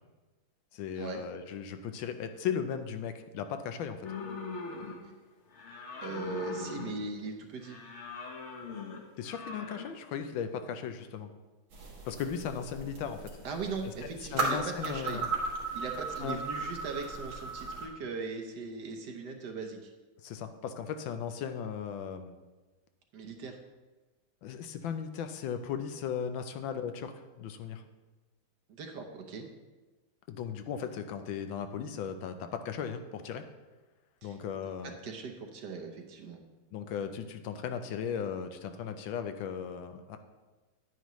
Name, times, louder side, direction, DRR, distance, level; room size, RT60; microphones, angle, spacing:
voice 1, 0.7-4.0 9.2-11.3 12.1-13.3 14.3-15.3 15.7-15.8 16.2-16.4 20.2-22.4 24.4-27.8 30.3-33.4 34.2-35.0 36.7-40.2, left 7 dB, 80° left, 8 dB, 1.4 m, -37 dB
sound 1, 4.0-5.2 5.5-7.2 7.6-10.0, left 3 dB, 45° left, 1.0 m, -41 dB
voice 2, 6.0-7.8 13.4-15.2 15.7-19.9 23.1-23.6 28.7-29.4 34.2-34.4 35.0-36.4, right 4 dB, 60° right, 3 dB, 1.4 m, -39 dB
sound 2, 11.7-17.9, right 3 dB, 80° right, 2.4 m, -36 dB
10.0 x 9.2 x 3.1 m, 1.2 s
omnidirectional pair, 2.2 m